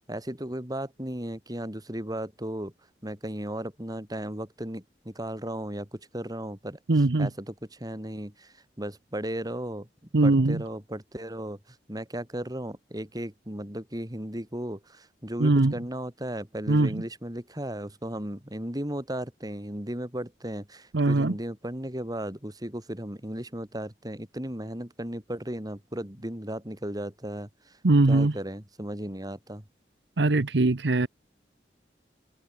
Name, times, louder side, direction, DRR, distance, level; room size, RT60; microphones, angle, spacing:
voice 1, 0.0-2.7 3.0-6.8 7.2-9.9 10.2-27.7 28.1-29.6, right 1 dB, 20° right, 4.0 m, -35 dB
voice 2, 6.9-7.3 10.1-10.6 15.4-15.7 16.7-17.0 20.9-21.3 27.8-28.3 30.2-31.1, right 2 dB, 80° right, 0.9 m, -21 dB
head